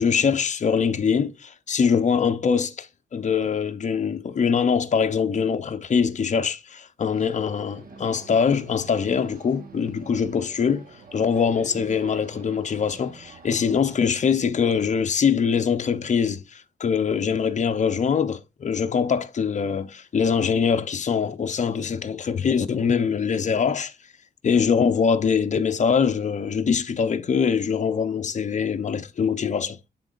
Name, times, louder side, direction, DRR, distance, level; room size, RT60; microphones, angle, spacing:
voice 1, 0.0-10.8 11.1-23.9 24.4-29.7, left 6 dB, 45° left, 0.7 m, -23 dB
sound 1, 7.1-14.0, right 4 dB, 55° right, 1.4 m, -46 dB
11.5 x 3.8 x 2.5 m
cardioid pair, 105°, 18 cm